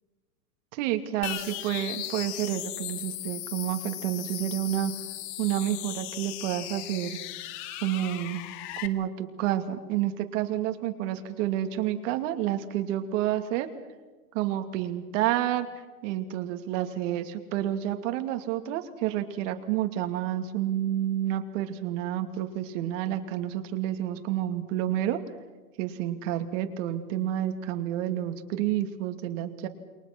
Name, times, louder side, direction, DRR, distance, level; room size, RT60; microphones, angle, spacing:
voice 1, 0.7-4.9 5.4-7.2 7.8-8.4 8.8-13.7 14.3-15.7 16.0-25.2 25.8-29.7, right 12 dB, 55° right, 7 dB, 2.7 m, -29 dB
sound 1, 1.2-8.9, left 14 dB, 45° left, 2.0 m, -37 dB
29.0 x 22.5 x 6.2 m, 1.2 s
hypercardioid pair, 130°, 45 cm